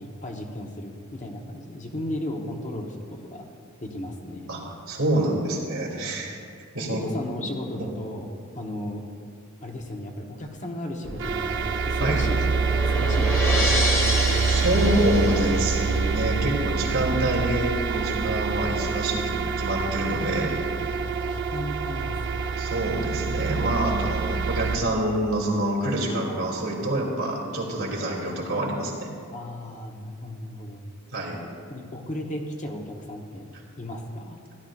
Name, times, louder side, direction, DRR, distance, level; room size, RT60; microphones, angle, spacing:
voice 1, 0.0-3.4 3.8-4.5 6.0-6.1 6.9-8.3 8.5-9.0 9.6-13.8 20.8-20.9 21.2-22.5 29.3-30.8 31.7-33.5 33.8-34.4, left 1 dB, 35° left, 1 dB, 1.0 m, -35 dB
voice 2, 4.5-6.3 6.7-7.0 12.0-12.2 14.5-20.5 22.6-29.1 31.1-31.4, right 1 dB, 80° right, -4 dB, 2.7 m, -26 dB
sound 1, 11.1-24.8, right 4 dB, 60° right, 0.7 m, -26 dB
sound 2, 11.4-16.2, equal, 15° left, 1.4 m, -29 dB
16.0 x 11.5 x 2.5 m, 2.2 s
head